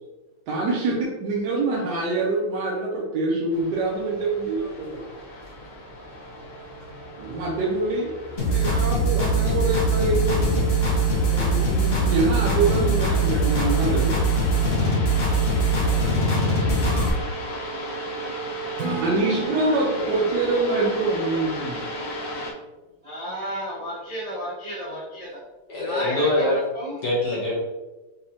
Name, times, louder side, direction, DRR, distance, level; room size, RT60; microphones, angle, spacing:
voice 1, 0.5-5.0 7.2-8.1 8.4-10.6 11.3-14.1 18.9-21.8, right 3 dB, 65° right, -3 dB, 1.1 m, -25 dB
sound 1, 3.5-22.5, right 1 dB, 80° left, 0.6 m, -34 dB
sound 2, 8.4-17.1, right 1 dB, 45° left, 0.8 m, -22 dB
Acoustic guitar / Strum, 18.8-22.3, right 3 dB, 85° right, 1.8 m, -37 dB
voice 2, 20.3-20.9 23.0-25.4 25.7-27.0, equal, 40° right, -7 dB, 0.5 m, -33 dB
voice 3, 25.7-26.6 27.0-27.6, left 1 dB, 60° left, -5 dB, 1.3 m, -23 dB
5.5 x 2.8 x 2.8 m, 1.1 s
omnidirectional pair, 2.2 m